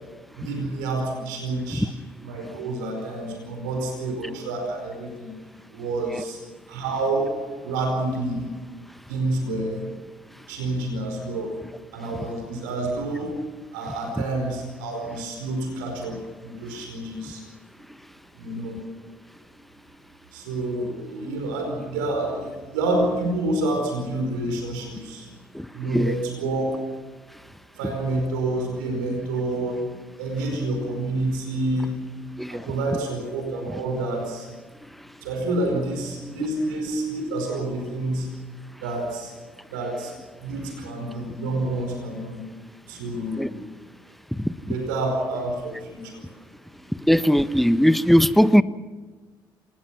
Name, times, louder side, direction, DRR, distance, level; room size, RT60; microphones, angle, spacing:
voice 1, 0.4-1.9 2.2-5.3 5.7-6.4 6.7-7.3 7.6-8.4 9.1-9.8 10.5-11.5 11.9-13.3 13.7-16.2 16.4-17.4 18.4-18.8 20.3-25.3 25.7-26.7 27.8-29.8 30.2-31.9 32.5-34.5 35.2-38.3 38.8-39.3 39.7-40.1 40.4-42.4 42.9-43.6 44.6-46.2, right 2 dB, 85° right, 3 dB, 4.9 m, -28 dB
voice 2, 25.5-26.1 32.4-32.7 43.4-43.5 44.3-44.5 47.0-48.6, equal, ahead, 13 dB, 1.3 m, -19 dB
27.5 x 20.0 x 6.1 m, 1.3 s
hypercardioid pair, 55°, 10 cm